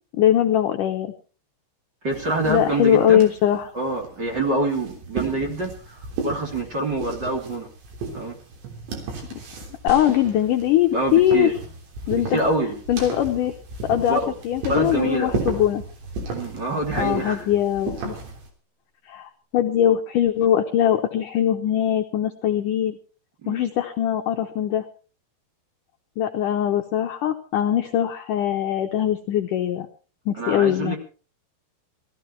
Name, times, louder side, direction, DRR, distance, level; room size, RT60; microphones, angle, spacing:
voice 1, 0.1-1.1 2.5-3.7 9.3-9.4 9.8-11.5 12.1-12.4 12.9-13.5 13.8-14.2 14.4-15.8 17.0-18.2 19.1-23.0 23.5-24.8 26.2-29.9 30.3-31.0, left 11 dB, 75° left, 5 dB, 2.0 m, -21 dB
voice 2, 2.0-3.3 3.7-7.7 8.1-8.3 10.9-11.5 12.3-12.8 14.1-14.3 14.7-15.3 16.3-17.4 23.4-23.6 30.4-31.0, right 2 dB, 30° right, 0 dB, 2.8 m, -26 dB
sound 1, 2.1-18.5, right 4 dB, 85° right, 5.8 m, -35 dB
sound 2, 9.9-11.4 12.1-12.2, left 1 dB, 45° right, 2.4 m, -39 dB
19.5 x 14.0 x 4.5 m, 0.37 s
omnidirectional pair, 4.9 m